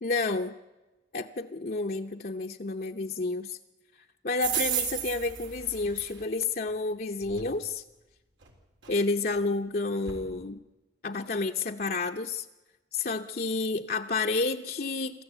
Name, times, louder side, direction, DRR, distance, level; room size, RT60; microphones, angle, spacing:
voice 1, 0.0-0.5 1.1-3.6 4.2-7.8 8.9-10.6 11.0-12.5 12.9-15.2, left 3 dB, 50° left, 3 dB, 0.7 m, -30 dB
sound 1, 4.4-6.2 7.2-7.5 8.4-8.5 8.8-8.9 9.4-9.5 10.1-10.2, right 9 dB, 90° right, 3.7 m, -33 dB
27.0 x 14.0 x 8.2 m, 1.1 s
head